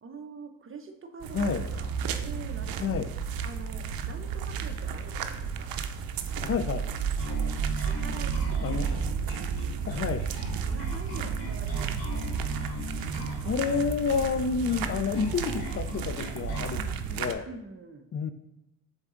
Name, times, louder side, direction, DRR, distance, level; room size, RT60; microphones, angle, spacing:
voice 1, 0.0-3.0 3.4-5.7 7.3-9.1 10.7-12.4 17.5-18.1, right 4 dB, 35° right, 6 dB, 0.8 m, -45 dB
sound 1, 1.2-17.3, right 7 dB, 75° right, 0.6 m, -32 dB
voice 2, 1.3-1.6 2.8-3.1 6.4-6.9 8.6-9.0 9.9-10.3 13.4-17.5 18.1-18.3, left 5 dB, 40° left, 11 dB, 0.5 m, -29 dB
sound 2, 1.8-16.6, right 2 dB, 15° right, 0.5 m, -50 dB
Bass guitar, 7.2-16.8, left 1 dB, 75° left, 2.5 m, -39 dB
6.9 x 4.0 x 3.8 m, 0.87 s
cardioid pair, 80°, 35 cm